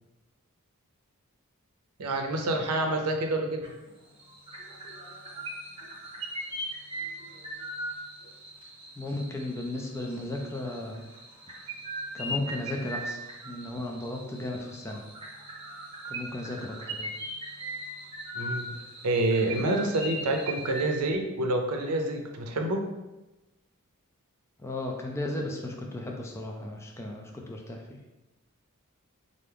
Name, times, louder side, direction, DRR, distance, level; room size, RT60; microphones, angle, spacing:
voice 1, 2.0-3.6 18.4-18.7 19.0-22.8, right 2 dB, 85° right, 3 dB, 0.6 m, -27 dB
sound 1, 3.6-3.9 4.2-21.0, right 1 dB, 25° right, 0.9 m, -39 dB
voice 2, 9.0-11.0 12.1-13.2 13.4-15.0 16.1-17.1 24.6-28.0, left 1 dB, 10° left, 0 dB, 0.4 m, -35 dB
4.6 x 2.5 x 3.4 m, 1.0 s
head